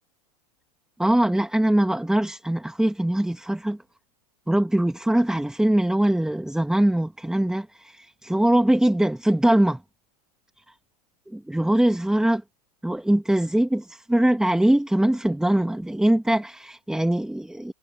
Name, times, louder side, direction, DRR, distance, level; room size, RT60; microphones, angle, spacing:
voice 1, 1.0-3.8 4.5-9.8 11.3-12.4 12.8-17.7, right 1 dB, 5° right, 1.8 m, -22 dB
hypercardioid pair, 110°, 20 cm